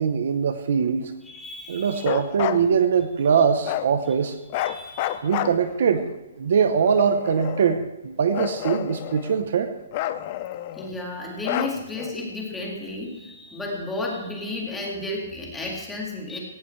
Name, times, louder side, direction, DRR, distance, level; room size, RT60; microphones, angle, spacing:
voice 1, 0.0-1.1 1.7-4.4 5.2-6.1 6.4-9.7, right 6 dB, 45° right, 9 dB, 0.9 m, -22 dB
voice 2, 1.2-2.2 4.6-5.3 10.7-16.4, left 2 dB, 5° left, -2 dB, 2.1 m, -33 dB
Bark, 2.0-2.6 3.6-3.9 4.5-6.0 6.8-7.8 8.3-9.4 9.9-10.9 11.4-12.1, left 13 dB, 25° left, 0.5 m, -30 dB
17.5 x 16.5 x 3.3 m, 1.0 s
hypercardioid pair, 180°, 0 cm